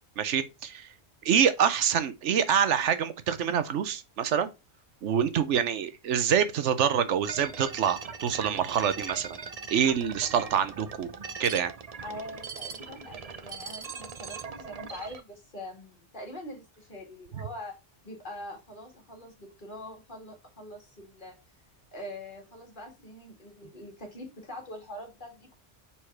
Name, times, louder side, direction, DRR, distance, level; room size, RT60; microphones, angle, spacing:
voice 1, 0.2-0.9 1.2-4.5 5.0-9.3 9.7-11.1 11.4-11.7 17.3-17.4, right 8 dB, 80° right, 1.1 m, -26 dB
sound 1, 7.2-15.2, right 5 dB, 40° right, 0.6 m, -40 dB
voice 2, 12.0-17.8 18.0-21.4 21.9-25.5, left 1 dB, 45° left, 2.1 m, -43 dB
4.8 x 4.3 x 5.7 m
omnidirectional pair, 1.2 m